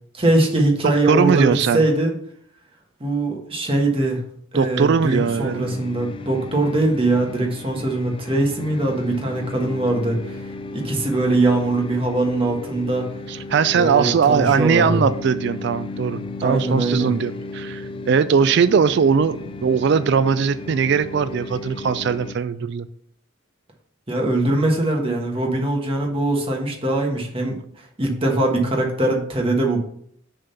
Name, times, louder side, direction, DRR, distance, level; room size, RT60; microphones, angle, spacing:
voice 1, 0.1-2.1 3.0-4.2 4.5-10.4 10.7-13.1 13.7-15.0 16.4-17.1 24.1-27.6 28.0-29.8, right 2 dB, 25° right, 1.3 m, -21 dB
voice 2, 0.8-1.8 4.5-5.9 13.3-22.9, right 6 dB, 55° right, 0.3 m, -20 dB
sound 1, 5.0-22.4, left 3 dB, 25° left, 0.3 m, -34 dB
6.8 x 3.7 x 5.5 m
head